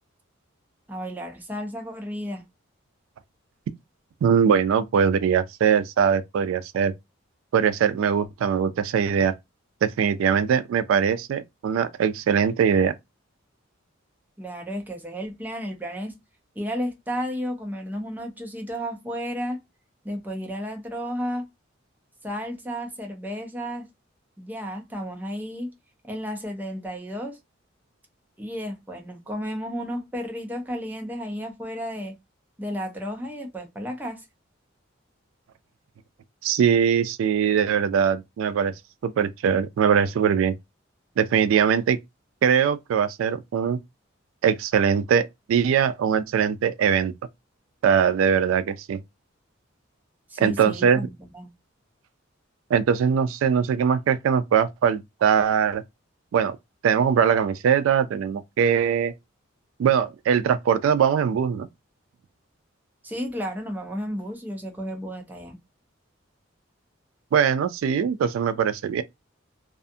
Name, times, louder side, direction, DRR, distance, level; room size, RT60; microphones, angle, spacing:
voice 1, 0.9-2.4 14.4-16.2 16.6-19.6 20.0-21.4 22.2-23.9 24.4-25.7 26.0-27.4 28.4-32.2 32.6-34.3 50.3-51.5 63.0-65.6, equal, 10° right, 0.5 m, -32 dB
voice 2, 4.2-6.9 7.5-9.3 9.8-12.9 36.4-38.7 39.0-40.5 41.2-42.0 42.4-43.8 44.4-47.1 47.8-49.0 50.4-51.1 52.7-55.8 56.3-56.6 56.8-59.1 59.8-61.7 67.3-69.0, right 7 dB, 90° right, 0.3 m, -21 dB
2.4 x 2.3 x 2.6 m
head